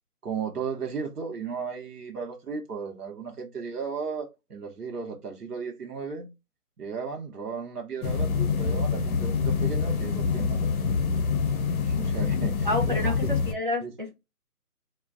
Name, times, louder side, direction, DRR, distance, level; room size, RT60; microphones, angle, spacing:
voice 1, 0.2-6.3 6.8-10.7 11.8-13.3 13.8-13.9, right 5 dB, 85° right, 0.8 m, -35 dB
sound 1, 8.0-13.5, left 5 dB, 65° left, 0.6 m, -26 dB
voice 2, 12.6-13.1 13.5-14.1, left 2 dB, 35° right, 0.5 m, -28 dB
2.4 x 2.2 x 2.3 m
figure-of-eight pair, 160°, 45 cm